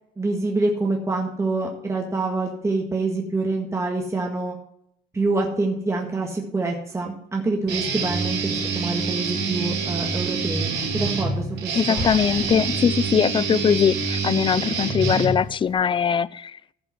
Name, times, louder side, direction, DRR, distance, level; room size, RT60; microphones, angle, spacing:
voice 1, 0.2-4.6 5.1-12.1, right 2 dB, 15° right, 1.8 m, -26 dB
Guitar, 7.7-15.7, right 4 dB, 80° right, 3.5 m, -26 dB
voice 2, 11.7-16.6, left 7 dB, 30° left, 0.4 m, -21 dB
Explosion, 11.9-13.8, left 2 dB, 75° left, 4.3 m, -35 dB
15.0 x 5.4 x 6.1 m
cardioid pair, 110°, 17 cm